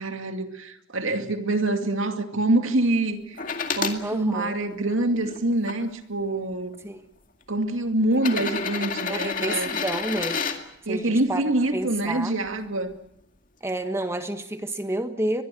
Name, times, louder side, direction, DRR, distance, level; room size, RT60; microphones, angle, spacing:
voice 1, 0.0-3.4 3.7-6.8 7.5-9.7 10.9-12.9, right 2 dB, 90° right, 2.3 m, -25 dB
sound 1, 3.4-4.0 4.7-5.7 6.7-6.8 8.1-10.6 12.5-12.6, left 5 dB, 40° left, 2.2 m, -29 dB
voice 2, 4.0-4.6 6.8-7.0 9.1-10.4 10.8-12.4 13.6-15.4, right 1 dB, 15° right, 1.4 m, -30 dB
22.5 x 22.5 x 7.6 m
head